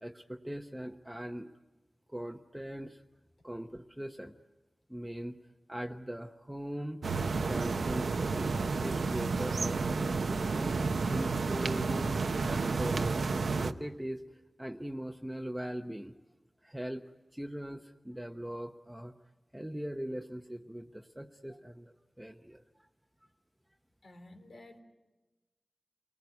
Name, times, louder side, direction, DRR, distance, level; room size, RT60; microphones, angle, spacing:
voice 1, 0.0-1.5 2.1-3.0 3.4-4.3 4.9-5.4 5.7-7.0 7.4-10.7 11.1-13.2 13.5-14.2 14.6-16.1 16.6-17.0 17.3-19.1 19.5-22.6, equal, 10° right, 4 dB, 0.9 m, -40 dB
sound 1, 7.0-13.7, right 4 dB, 90° right, 0.8 m, -31 dB
voice 2, 24.0-24.8, left 1 dB, 80° left, 3 dB, 3.6 m, -52 dB
28.5 x 19.5 x 9.5 m, 1.1 s
wide cardioid pair, 95°, 0 cm